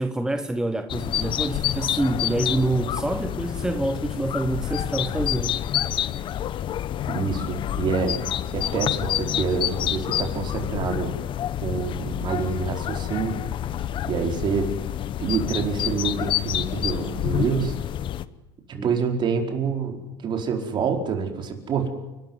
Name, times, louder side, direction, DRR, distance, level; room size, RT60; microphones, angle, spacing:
voice 1, 0.0-5.6 18.7-18.9, right 2 dB, 5° right, 8 dB, 1.2 m, -26 dB
sound 1, 0.9-18.2, left 11 dB, 45° left, 1.1 m, -28 dB
voice 2, 7.1-8.2 8.5-11.2 11.6-13.4 14.0-14.7 15.2-17.7 18.7-21.9, right 6 dB, 40° right, 3 dB, 4.8 m, -27 dB
29.5 x 13.0 x 9.6 m, 1.1 s
supercardioid pair, 110°, 12 cm